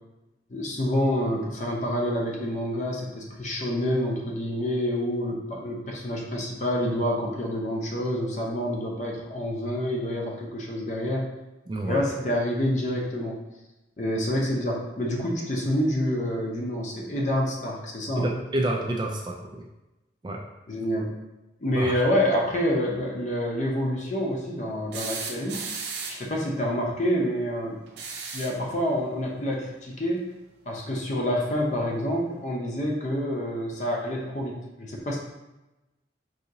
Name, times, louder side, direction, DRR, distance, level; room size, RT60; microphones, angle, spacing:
voice 1, 0.5-11.3 11.8-13.4 14.0-18.3 20.7-21.1 21.6-25.7 26.1-27.8 28.3-30.2 30.7-35.2, equal, 40° left, -1 dB, 0.6 m, -27 dB
voice 2, 11.7-12.1 18.2-19.6 20.2-20.4 21.7-21.9, right 1 dB, 25° right, 1 dB, 0.3 m, -28 dB
sound 1, 24.9-26.3 27.9-28.6 30.3-30.4 31.9-32.0, right 5 dB, 75° right, 0.6 m, -35 dB
4.7 x 2.8 x 2.7 m, 1.0 s
head